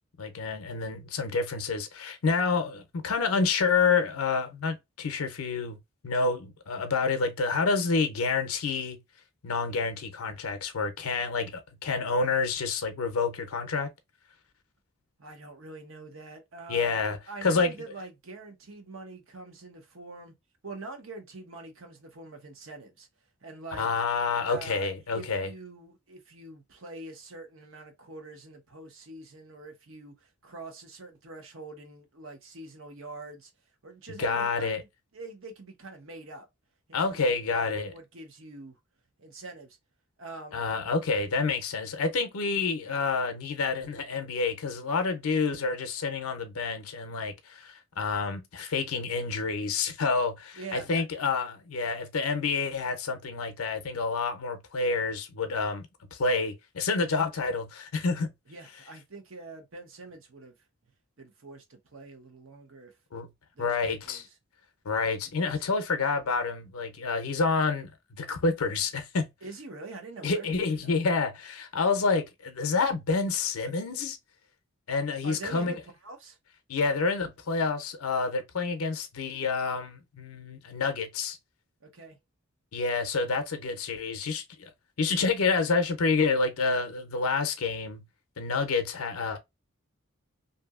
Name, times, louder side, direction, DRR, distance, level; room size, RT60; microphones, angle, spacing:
voice 1, 0.2-5.8 6.0-9.0 9.4-13.9 16.7-17.7 23.8-25.5 34.2-34.8 36.9-37.9 40.5-58.3 63.1-63.3 63.6-64.3 64.9-67.9 68.2-69.3 70.2-74.2 74.9-75.8 76.7-81.4 82.7-84.7 85.0-88.0 88.4-89.4, left 4 dB, 80° left, 0.6 m, -28 dB
voice 2, 15.2-20.3 20.6-23.1 23.4-23.9 24.4-33.5 33.8-34.9 35.1-36.5 36.9-38.8 39.2-39.8 40.2-40.6 50.6-51.0 58.5-60.5 61.2-63.0 63.5-64.2 65.4-65.5 69.4-70.9 75.2-75.8 76.0-76.4 81.8-82.2, right 2 dB, 65° right, 0.8 m, -44 dB
2.7 x 2.6 x 2.3 m
head